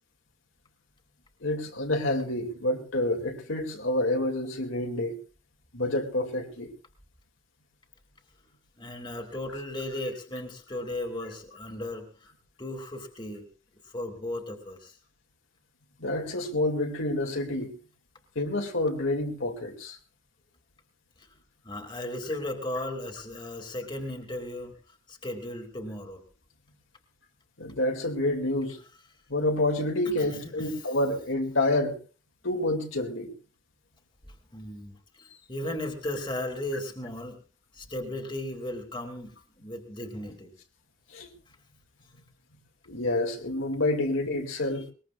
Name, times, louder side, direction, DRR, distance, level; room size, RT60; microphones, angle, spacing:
voice 1, 1.4-5.1 5.7-6.7 16.0-17.7 18.4-20.0 27.6-28.8 29.3-32.0 32.4-33.3 41.1-41.3 42.9-44.9, left 1 dB, 65° left, 2.5 m, -28 dB
voice 2, 8.8-12.1 12.6-13.5 13.8-15.0 21.2-21.3 21.6-24.7 25.1-26.2 30.0-30.8 34.5-37.4 37.7-40.5 44.0-44.1, left 1 dB, 20° left, 2.5 m, -36 dB
21.5 x 20.5 x 2.5 m
head